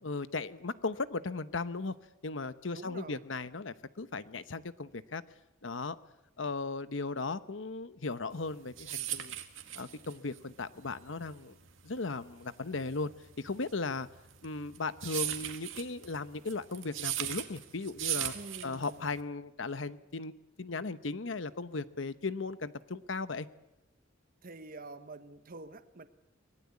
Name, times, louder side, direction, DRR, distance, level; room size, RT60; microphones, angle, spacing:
voice 1, 0.0-1.9 2.2-5.2 5.6-6.0 6.4-9.3 9.7-11.6 11.8-13.1 13.4-14.1 14.4-18.3 18.6-20.3 20.6-23.5, left 3 dB, 75° left, 14 dB, 1.0 m, -37 dB
voice 2, 2.7-3.2 18.3-19.2 24.4-26.1, right 2 dB, 50° right, 10 dB, 1.3 m, -47 dB
sound 1, 8.4-19.2, right 13 dB, 85° right, 2.1 m, -38 dB
24.5 x 19.5 x 8.4 m, 0.96 s
head